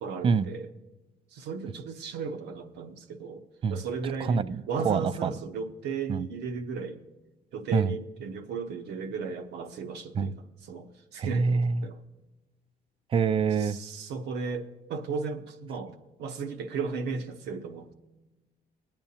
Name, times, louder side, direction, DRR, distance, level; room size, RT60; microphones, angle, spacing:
voice 1, 0.0-0.7 1.3-3.4 3.7-7.0 7.5-10.3 10.6-12.0 13.6-17.9, right 5 dB, 80° right, 0.9 m, -35 dB
voice 2, 4.3-5.3 6.1-6.2 7.7-7.9 10.1-10.3 11.2-11.9 13.1-13.8, right 5 dB, 30° right, 0.4 m, -25 dB
20.5 x 8.9 x 2.8 m
cardioid pair, 110°, 17 cm